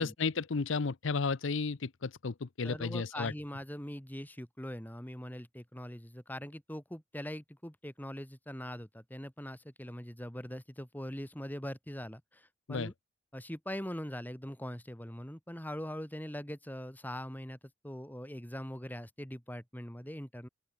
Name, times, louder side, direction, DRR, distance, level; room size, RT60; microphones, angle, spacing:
voice 1, 0.0-3.3 12.7-12.9, left 4 dB, 65° left, 0.7 m, -33 dB
voice 2, 2.6-12.9 13.3-17.6 17.8-20.5, equal, 10° left, 3.5 m, -42 dB
open air
head